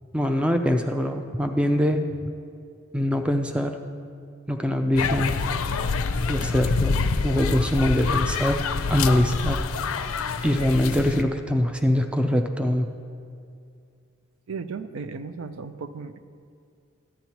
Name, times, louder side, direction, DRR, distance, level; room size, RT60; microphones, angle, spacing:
voice 1, 0.1-2.0 2.9-3.8 4.5-5.3 6.3-7.0 7.2-8.6 8.9-9.6 10.4-12.9, equal, 5° right, 5 dB, 0.3 m, -23 dB
sound 1, 5.0-11.2, left 4 dB, 85° left, 0.5 m, -26 dB
voice 2, 14.5-16.2, right 5 dB, 80° right, 10 dB, 0.4 m, -35 dB
14.0 x 9.5 x 2.9 m, 2.3 s
head